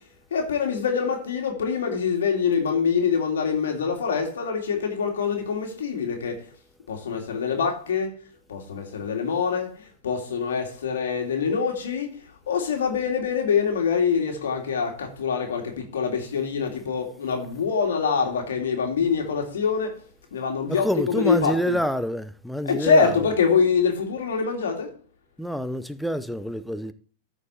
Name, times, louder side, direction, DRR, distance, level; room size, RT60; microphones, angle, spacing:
voice 1, 0.3-6.3 6.9-8.1 8.5-9.7 10.0-12.1 12.5-19.9 20.3-21.8 22.7-24.9, left 6 dB, 70° left, 2.4 m, -24 dB
voice 2, 20.7-23.1 25.4-26.9, equal, ahead, 0.7 m, -27 dB
14.0 x 5.1 x 4.3 m
figure-of-eight pair, 100°, 0 cm